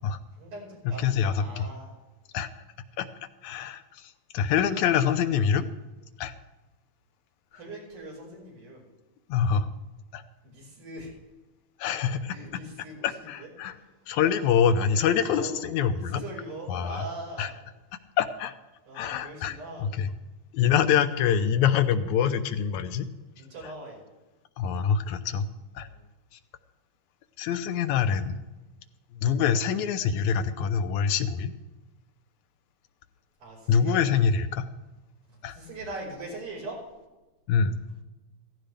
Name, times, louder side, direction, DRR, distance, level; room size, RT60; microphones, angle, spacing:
voice 1, 0.3-2.0 7.5-8.9 10.4-11.1 12.3-13.9 14.2-14.6 15.1-15.6 15.9-17.5 18.9-19.9 23.4-24.0 25.8-26.1 33.4-34.1 35.3-36.8, right 2 dB, 85° right, -4 dB, 6.8 m, -41 dB
voice 2, 0.9-1.7 2.3-2.5 3.0-3.1 3.4-3.8 4.3-5.7 6.2-6.3 9.3-9.7 10.1-10.2 11.8-12.4 13.0-13.7 14.1-16.2 16.7-17.0 17.4-17.5 18.2-18.5 18.9-20.1 20.5-23.1 24.6-25.5 25.8-25.9 27.4-28.4 29.1-31.5 33.7-34.7 35.4-35.6 37.5-37.8, left 7 dB, 80° left, 9 dB, 2.1 m, -25 dB
15.5 x 15.5 x 3.5 m, 1.1 s
omnidirectional pair, 3.4 m